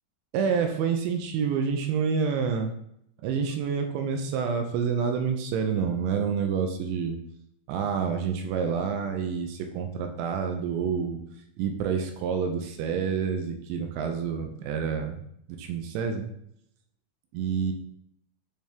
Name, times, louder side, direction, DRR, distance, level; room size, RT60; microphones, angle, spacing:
voice 1, 0.3-2.7 3.2-7.2 7.7-11.2 11.6-15.2 15.5-16.3 17.3-17.7, right 6 dB, 80° right, 5 dB, 2.6 m, -28 dB
8.9 x 3.4 x 3.4 m, 0.72 s
omnidirectional pair, 5.7 m